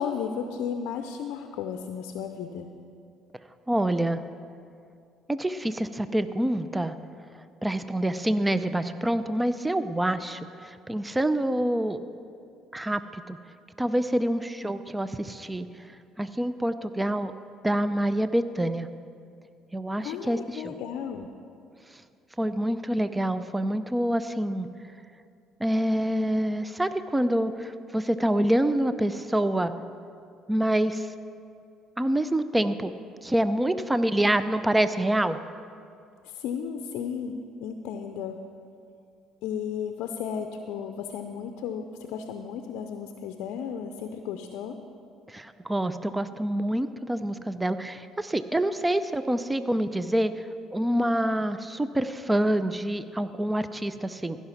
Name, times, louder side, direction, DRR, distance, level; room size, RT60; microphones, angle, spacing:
voice 1, 0.0-2.7 20.0-21.3 36.2-37.3 37.6-38.4 39.4-44.8, left 7 dB, 70° left, 7 dB, 0.5 m, -34 dB
voice 2, 3.7-4.2 5.3-6.9 7.6-12.0 12.7-13.4 13.8-15.7 16.2-17.3 17.6-18.9 19.7-20.7 22.4-24.7 25.6-29.7 30.5-31.1 32.0-32.9 33.2-35.4 45.3-50.5 50.7-54.4, right 1 dB, 15° right, 12 dB, 0.5 m, -26 dB
15.0 x 5.8 x 5.8 m, 2.4 s
hypercardioid pair, 60°, 0 cm